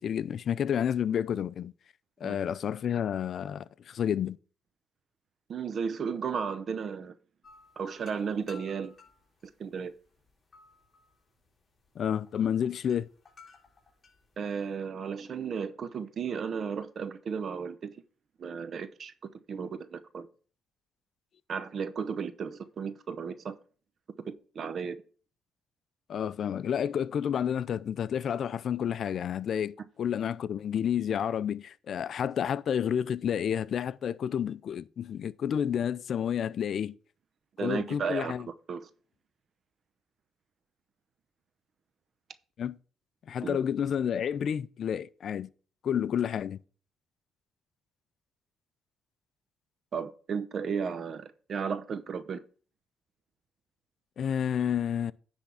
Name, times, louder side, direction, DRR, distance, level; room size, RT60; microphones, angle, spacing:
voice 1, 0.0-1.7 2.2-4.4 12.0-13.1 26.1-36.9 37.6-38.5 42.6-42.8 43.3-45.5 45.8-46.6 54.2-55.1, left 8 dB, 60° left, 0.4 m, -30 dB
voice 2, 5.5-7.1 7.8-8.9 9.6-9.9 14.4-17.9 18.4-19.1 19.5-20.3 21.5-23.5 24.2-25.0 37.6-38.3 38.7-38.9 43.4-43.6 49.9-52.4, right 6 dB, 55° right, 0.8 m, -34 dB
sound 1, 7.4-14.7, left 4 dB, 30° left, 3.5 m, -57 dB
10.0 x 3.5 x 7.1 m
cardioid pair, 90°, 0 cm